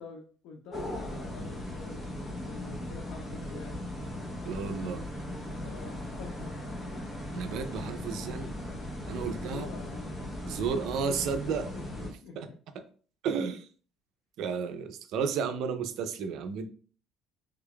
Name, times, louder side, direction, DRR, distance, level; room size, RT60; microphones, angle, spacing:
voice 1, 0.0-3.9 5.6-6.5 9.1-10.2 11.7-12.4, left 4 dB, 80° left, 2 dB, 0.6 m, -47 dB
sound 1, 0.7-12.1, left 1 dB, 15° left, 0.8 m, -38 dB
voice 2, 4.4-5.1 7.3-8.5 9.0-9.7 10.4-11.7 12.4-12.5 12.7-12.8 13.2-13.7 14.4-16.7, right 6 dB, 65° right, 8 dB, 0.5 m, -32 dB
3.4 x 2.3 x 3.6 m, 0.41 s
cardioid pair, 150°, 0 cm